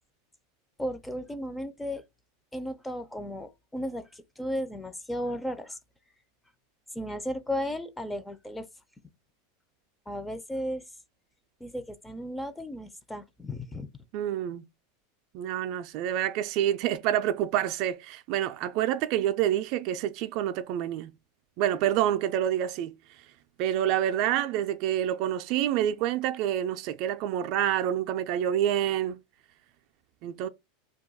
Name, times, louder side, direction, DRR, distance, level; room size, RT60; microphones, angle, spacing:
voice 1, 0.8-2.0 2.5-5.8 6.9-8.7 10.1-10.8 11.6-13.9, equal, 10° left, 0.4 m, -35 dB
voice 2, 14.1-14.6 15.3-21.1 21.6-22.9 23.6-29.2 30.2-30.5, right 11 dB, 55° right, 0.3 m, -27 dB
2.3 x 2.2 x 3.9 m
supercardioid pair, 120°, 0 cm